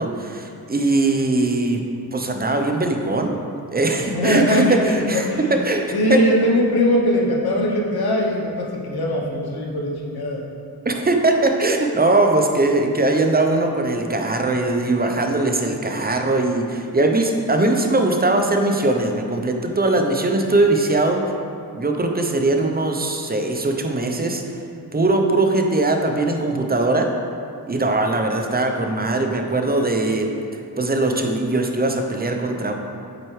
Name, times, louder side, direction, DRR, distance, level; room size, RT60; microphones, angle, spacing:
voice 1, 0.0-1.8 2.1-3.3 3.7-6.2 10.8-21.2 21.7-24.4 24.9-27.1 27.7-30.3 30.8-32.7, right 2 dB, 25° right, 3 dB, 0.6 m, -20 dB
voice 2, 4.1-5.5 5.9-10.4, left 1 dB, 80° left, -1 dB, 0.9 m, -21 dB
7.7 x 4.4 x 3.2 m, 2.4 s
cardioid pair, 60°, 37 cm